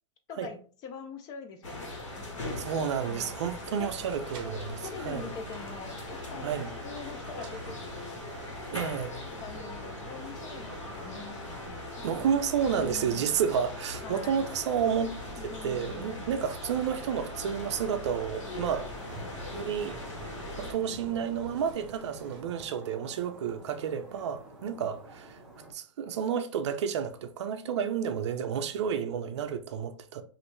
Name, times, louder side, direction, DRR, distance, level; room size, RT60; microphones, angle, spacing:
voice 1, 0.3-2.6 3.0-3.3 3.8-3.9 4.8-6.5 6.8-8.2 9.4-12.2 12.6-13.4 14.0-14.4 15.4-16.4 18.4-18.7 20.9-21.3 24.7-24.9, left 5 dB, 25° left, 0.4 m, -44 dB
sound 1, 1.6-20.7, left 2 dB, 70° left, 1.4 m, -40 dB
voice 2, 2.6-5.3 6.4-6.7 8.7-9.1 12.0-18.9 19.5-20.0 20.6-25.4 25.7-30.2, right 7 dB, 65° right, 0.5 m, -31 dB
sound 2, 3.8-22.4, right 3 dB, 30° right, 0.7 m, -50 dB
sound 3, 18.6-25.7, right 1 dB, ahead, 0.9 m, -48 dB
3.0 x 2.5 x 3.1 m
hypercardioid pair, 140°, 16 cm